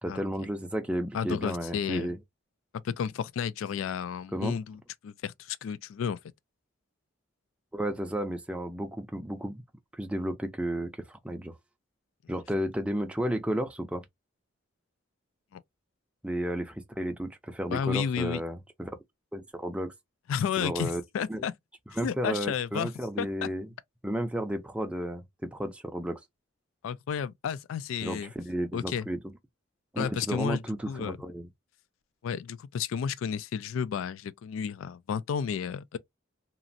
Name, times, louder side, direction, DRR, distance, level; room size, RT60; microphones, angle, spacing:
voice 1, 0.0-2.2 4.3-4.6 7.7-9.6 9.9-11.5 12.3-14.0 16.2-18.9 19.3-19.9 20.6-21.0 21.3-21.4 21.9-23.7 24.0-26.2 28.0-29.2 29.9-31.5, equal, 5° right, 0.4 m, -33 dB
voice 2, 1.1-2.1 2.8-6.2 15.5-15.6 17.7-18.4 20.3-21.5 22.0-22.9 23.2-23.5 26.8-28.3 28.7-29.1 30.0-31.2 32.2-36.0, left 7 dB, 80° left, 0.3 m, -32 dB
3.0 x 2.5 x 2.5 m
head